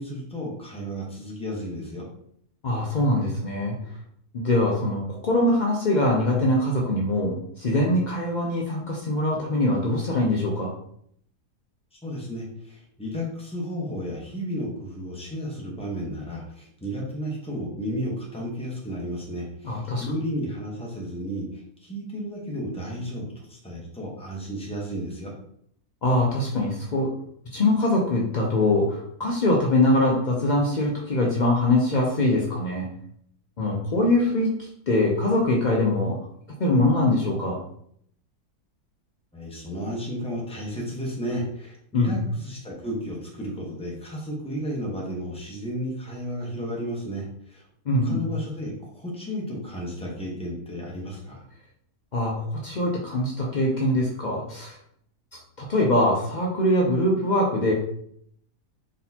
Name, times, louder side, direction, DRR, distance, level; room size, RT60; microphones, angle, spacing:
voice 1, 0.0-2.1 12.0-25.3 39.3-47.6 48.0-51.4, equal, 5° left, -3 dB, 0.7 m, -33 dB
voice 2, 2.6-3.8 4.3-10.7 19.6-20.0 26.0-27.1 27.5-32.9 33.6-36.2 36.6-37.6 41.9-42.2 47.9-48.2 52.1-54.8 55.6-57.7, left 1 dB, 80° left, -2 dB, 0.4 m, -23 dB
4.1 x 3.8 x 2.8 m, 0.68 s
omnidirectional pair, 1.7 m